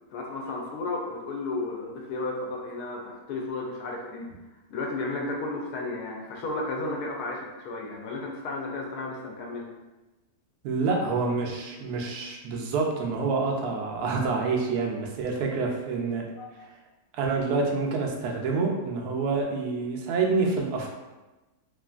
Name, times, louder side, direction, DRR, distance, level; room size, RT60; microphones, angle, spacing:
voice 1, 0.1-4.3 4.7-9.7 16.4-16.5, left 2 dB, 80° left, -1 dB, 1.1 m, -33 dB
voice 2, 10.6-16.2 17.1-21.0, right 4 dB, 80° right, 0 dB, 1.1 m, -27 dB
3.0 x 2.4 x 2.4 m, 1.1 s
omnidirectional pair, 1.7 m